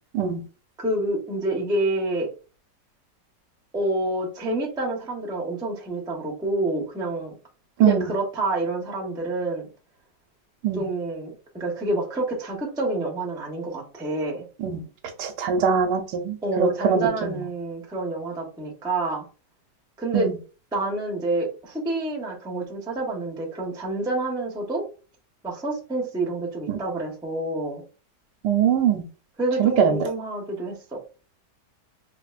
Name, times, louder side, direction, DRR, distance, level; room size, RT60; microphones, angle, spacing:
voice 1, 0.8-2.3 3.7-7.4 7.8-9.7 10.7-14.5 16.4-19.3 20.0-20.3 20.7-24.8 25.4-27.8 29.4-31.0, right 2 dB, 5° right, -2 dB, 0.4 m, -28 dB
voice 2, 7.8-8.1 10.6-10.8 14.6-14.8 15.2-17.4 20.1-20.3 26.7-26.8 28.4-29.1 29.6-30.0, right 7 dB, 80° right, 5 dB, 1.2 m, -22 dB
4.8 x 2.4 x 2.4 m, 0.36 s
omnidirectional pair, 1.9 m